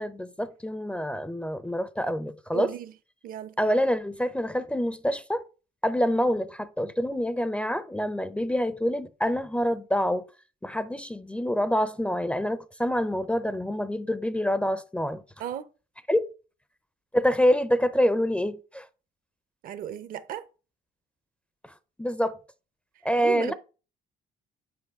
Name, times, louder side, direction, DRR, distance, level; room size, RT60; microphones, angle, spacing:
voice 1, 0.0-2.7 3.6-5.4 5.8-10.2 10.6-15.2 16.1-16.3 17.1-18.9 22.0-22.4 23.0-23.5, equal, 5° left, 0.4 m, -26 dB
voice 2, 2.5-2.9 3.2-3.5 15.4-15.7 19.6-20.4 23.2-23.5, right 10 dB, 55° right, 0.6 m, -35 dB
8.6 x 4.7 x 3.5 m
cardioid pair, 110°, 17 cm